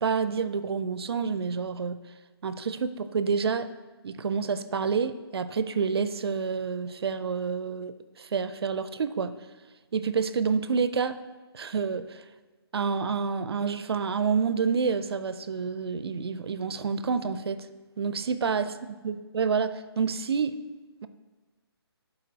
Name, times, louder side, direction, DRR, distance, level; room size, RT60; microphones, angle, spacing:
voice 1, 0.0-2.0 2.4-3.7 4.0-9.3 9.9-11.2 11.5-12.2 12.7-17.7 18.0-18.6 19.0-20.7, right 5 dB, 70° right, 12 dB, 0.4 m, -28 dB
12.0 x 4.0 x 2.8 m, 1.3 s
hypercardioid pair, 155°, 14 cm